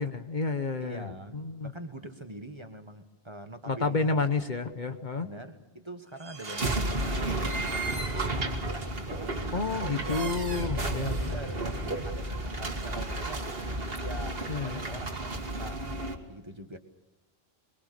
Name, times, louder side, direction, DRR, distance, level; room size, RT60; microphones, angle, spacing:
voice 1, 0.0-1.1 1.3-1.7 3.7-5.3 9.5-11.2 14.5-14.8, left 3 dB, 45° left, 8 dB, 1.1 m, -30 dB
voice 2, 0.8-4.3 5.2-13.6 14.0-16.8, right 1 dB, 25° right, 6 dB, 1.5 m, -44 dB
sound 1, 6.2-16.2, right 2 dB, 60° right, 2.1 m, -32 dB
24.5 x 22.5 x 6.7 m, 1.0 s
omnidirectional pair, 1.1 m